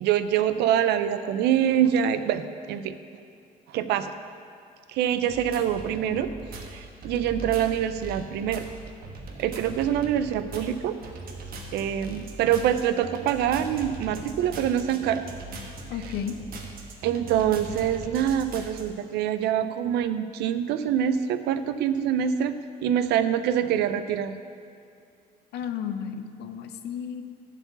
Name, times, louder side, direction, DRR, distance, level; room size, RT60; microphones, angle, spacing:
voice 1, 0.0-2.4 2.7-2.9 3.7-4.1 4.9-6.3 6.7-8.6 9.4-11.0 11.7-15.2 17.0-22.5 22.8-24.3, right 9 dB, 80° right, 11 dB, 0.5 m, -25 dB
sound 1, 5.3-18.8, right 2 dB, 60° right, 1.3 m, -40 dB
voice 2, 15.9-16.3 25.5-27.2, left 8 dB, 80° left, 8 dB, 0.7 m, -33 dB
10.5 x 4.9 x 7.0 m, 2.4 s
cardioid pair, 110°, 17 cm